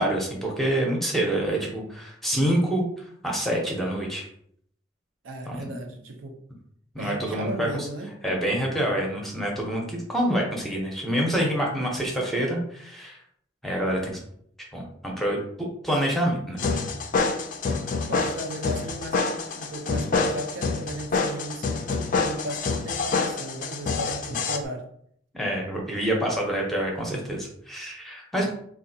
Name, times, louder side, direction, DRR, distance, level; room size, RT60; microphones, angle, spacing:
voice 1, 0.0-4.3 5.5-5.7 6.9-7.9 8.2-13.2 13.6-14.2 14.7-15.4 15.8-16.6 25.3-28.5, right 1 dB, ahead, 0.6 m, -27 dB
voice 2, 5.2-6.4 7.0-8.1 17.6-24.9, right 1 dB, 80° right, 0.6 m, -36 dB
sound 1, 16.6-24.6, left 4 dB, 40° left, 0.3 m, -27 dB
3.8 x 2.4 x 2.7 m
head